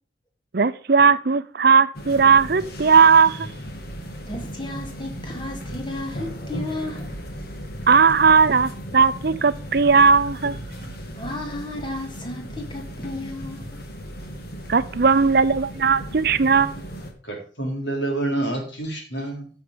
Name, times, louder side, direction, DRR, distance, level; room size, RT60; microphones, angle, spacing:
voice 1, 0.5-3.5 7.9-10.6 14.7-16.7, right 5 dB, 55° right, 0.6 m, -17 dB
sound 1, 1.9-17.1, equal, 55° left, 2.0 m, -36 dB
voice 2, 4.3-7.1 11.2-13.8, left 2 dB, 25° left, 2.3 m, -33 dB
voice 3, 17.2-19.5, right 2 dB, 75° left, 4.1 m, -28 dB
14.0 x 6.6 x 5.0 m
head